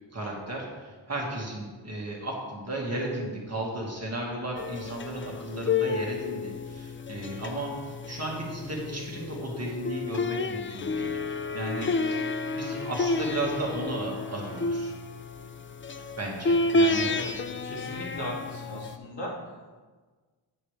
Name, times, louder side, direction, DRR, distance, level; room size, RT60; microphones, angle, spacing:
voice 1, 0.1-12.2 12.5-14.9 16.0-17.1, right 1 dB, 35° right, -2 dB, 1.8 m, -35 dB
sound 1, 4.6-19.0, left 3 dB, 30° left, 0.3 m, -30 dB
voice 2, 17.6-19.3, left 1 dB, 65° left, -4 dB, 2.2 m, -37 dB
9.7 x 7.8 x 3.3 m, 1.4 s
wide cardioid pair, 115°, 46 cm